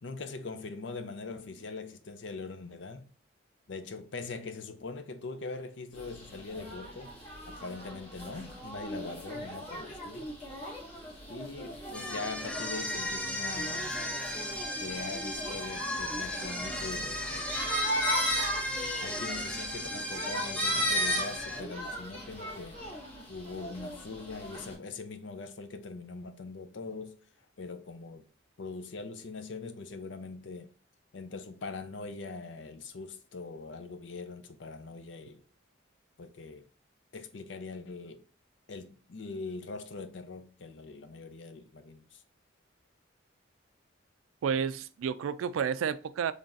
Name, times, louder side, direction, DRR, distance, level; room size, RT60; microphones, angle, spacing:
voice 1, 0.0-3.1 3.7-7.1 7.5-10.4 11.3-14.1 14.8-17.5 19.0-22.8 23.3-27.2 27.6-28.3 28.6-30.7 31.1-35.4 36.2-36.7 37.1-38.3 38.7-42.2, left 3 dB, 65° left, 0.5 m, -42 dB
sound 1, 6.0-24.7, equal, 35° left, 1.9 m, -37 dB
sound 2, 11.9-21.6, left 1 dB, 5° left, 0.4 m, -36 dB
voice 2, 44.4-46.3, right 7 dB, 85° right, 0.3 m, -31 dB
3.9 x 3.3 x 2.5 m
head